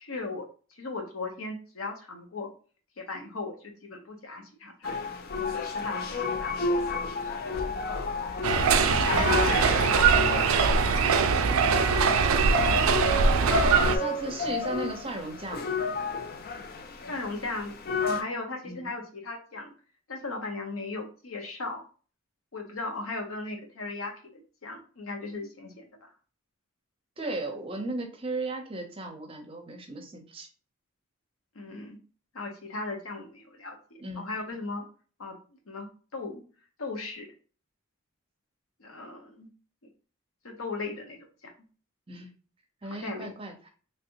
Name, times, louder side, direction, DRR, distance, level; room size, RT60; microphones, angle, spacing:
voice 1, 0.0-2.5 3.0-5.0 5.3-7.0 13.4-13.7 17.1-17.7 18.0-19.7 20.1-21.8 22.5-25.9 31.5-32.0 32.3-33.8 34.1-34.9 35.2-35.3 35.7-36.4 36.8-37.3 38.8-39.5 40.4-41.3 42.8-43.3, left 3 dB, 85° left, 2 dB, 0.9 m, -37 dB
sound 1, 4.8-18.2, left 4 dB, 45° left, 0.4 m, -31 dB
sound 2, 8.4-14.0, right 6 dB, 85° right, 0.3 m, -22 dB
voice 2, 9.1-9.6 13.8-15.6 18.6-18.9 27.2-30.5 34.0-34.3 42.1-42.3 42.8-43.5, right 2 dB, 25° right, 3 dB, 0.6 m, -35 dB
3.3 x 2.6 x 2.8 m, 0.38 s
head